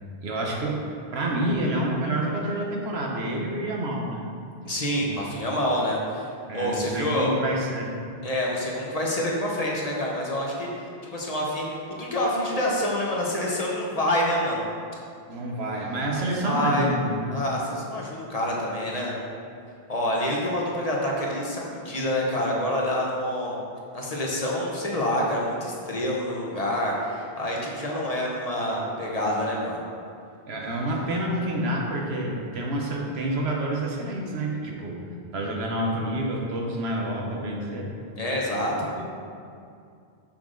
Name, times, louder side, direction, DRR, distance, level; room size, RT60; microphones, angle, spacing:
voice 1, 0.2-0.9 1.1-4.2 5.1-5.2 6.5-7.9 15.3-17.4 30.5-35.0 35.3-37.9 38.6-39.0, right 1 dB, 75° right, -1 dB, 1.2 m, -28 dB
voice 2, 4.6-6.3 6.5-7.4 8.2-14.6 16.1-16.9 17.3-19.2 19.9-23.6 23.9-29.8 38.2-39.0, left 1 dB, 40° left, -3 dB, 1.0 m, -27 dB
6.4 x 5.8 x 3.8 m, 2.4 s
omnidirectional pair, 1.1 m